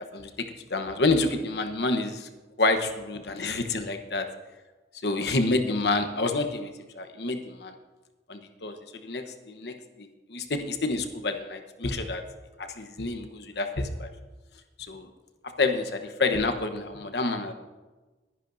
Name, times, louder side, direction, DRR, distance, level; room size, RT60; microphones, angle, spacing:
voice 1, 0.1-2.3 2.6-4.3 5.0-6.7 6.9-7.7 8.3-12.2 12.6-14.1 14.8-15.1 15.4-17.5, left 3 dB, 65° left, 7 dB, 1.1 m, -28 dB
20.5 x 10.5 x 2.7 m, 1.2 s
head